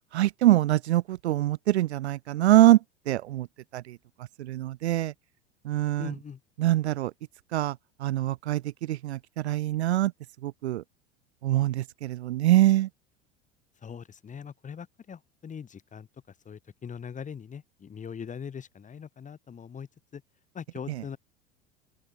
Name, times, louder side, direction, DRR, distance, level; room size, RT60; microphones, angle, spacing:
voice 1, 0.1-2.8 3.1-3.5 3.7-4.0 4.4-5.1 5.6-6.1 6.6-7.1 7.5-10.1 10.4-10.8 11.4-12.9, right 14 dB, 65° right, 0.5 m, -24 dB
voice 2, 6.0-6.4 13.8-20.2 20.5-21.2, left 7 dB, 20° left, 2.1 m, -41 dB
open air
figure-of-eight pair, 80°, 36 cm